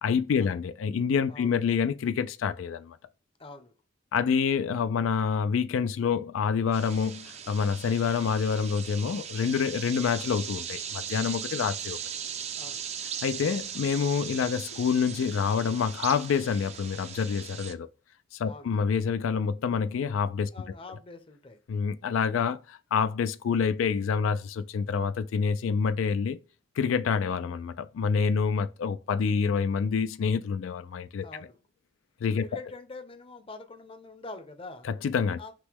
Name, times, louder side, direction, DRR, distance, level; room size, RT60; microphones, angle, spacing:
voice 1, 0.0-3.0 4.1-12.0 13.2-17.9 18.3-20.5 21.7-26.4 26.8-31.3 32.2-32.4 34.8-35.4, left 6 dB, 90° left, 0.3 m, -27 dB
voice 2, 3.4-3.7 12.6-12.9 18.4-18.7 20.5-21.6 31.2-31.6 32.3-34.9 35.4-35.5, left 3 dB, 30° left, 0.6 m, -44 dB
sound 1, 6.7-17.7, right 8 dB, 35° right, 0.4 m, -38 dB
6.0 x 2.1 x 3.4 m
head